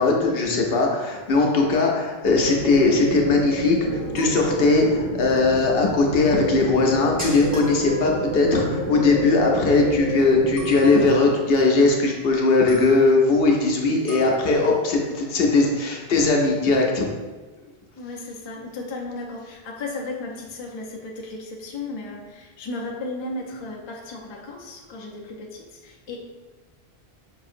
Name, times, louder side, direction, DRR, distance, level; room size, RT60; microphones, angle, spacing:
voice 1, 0.0-17.1 17.6-17.7, left 3 dB, 70° left, 0 dB, 0.9 m, -19 dB
sound 1, 2.2-10.7, equal, 85° right, 1.5 m, -29 dB
sound 2, 4.0-5.4 5.7-5.8 6.1-6.2 6.4-6.5 6.7-10.0 10.6-12.3 12.7-13.4 14.0-15.8, equal, 35° right, 1.1 m, -42 dB
voice 2, 18.0-26.2, left 2 dB, 35° left, -2 dB, 0.5 m, -35 dB
5.4 x 2.7 x 2.5 m, 1.3 s
omnidirectional pair, 1.0 m